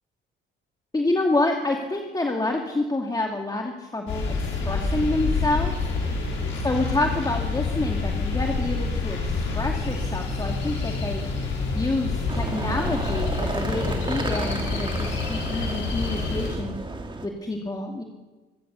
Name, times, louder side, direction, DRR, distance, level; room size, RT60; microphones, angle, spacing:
voice 1, 0.9-4.3 4.6-5.7 6.6-16.8 17.2-18.0, left 2 dB, 20° left, 1 dB, 2.5 m, -28 dB
sound 1, 4.1-16.5, left 3 dB, 80° left, 6.3 m, -27 dB
sound 2, 12.3-17.3, right 3 dB, 25° right, 2.6 m, -33 dB
26.0 x 15.5 x 7.0 m, 1.2 s
cardioid pair, 90°, 20 cm